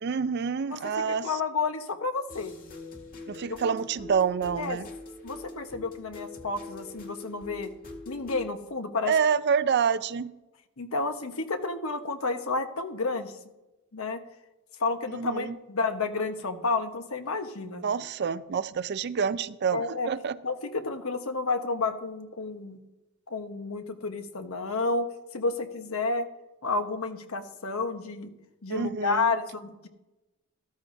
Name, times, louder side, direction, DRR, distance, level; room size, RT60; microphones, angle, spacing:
voice 1, 0.0-1.3 3.3-4.9 9.1-10.3 15.1-15.6 17.8-20.4 28.7-29.3, right 6 dB, 50° right, 15 dB, 0.4 m, -27 dB
voice 2, 0.7-2.5 3.5-3.7 4.6-4.8 5.2-7.7 8.1-9.1 10.8-13.4 13.9-14.2 14.8-17.8 19.7-20.1 20.4-22.8 23.3-26.3 26.6-28.3 28.6-29.9, left 3 dB, 80° left, 7 dB, 1.1 m, -31 dB
sound 1, 2.3-8.5, left 2 dB, 40° left, 1.9 m, -43 dB
13.5 x 13.5 x 2.6 m, 0.99 s
head